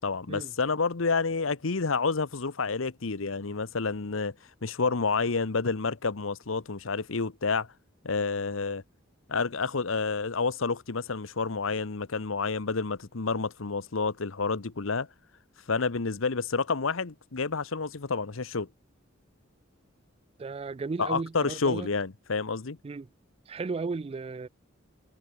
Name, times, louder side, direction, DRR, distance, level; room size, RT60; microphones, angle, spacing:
voice 1, 0.0-4.3 4.6-7.7 8.0-8.8 9.3-15.1 15.7-18.7 21.0-22.8, left 4 dB, 85° left, 1.0 m, -29 dB
voice 2, 20.4-21.9 22.8-23.1 23.5-24.5, right 4 dB, 30° right, 0.3 m, -34 dB
head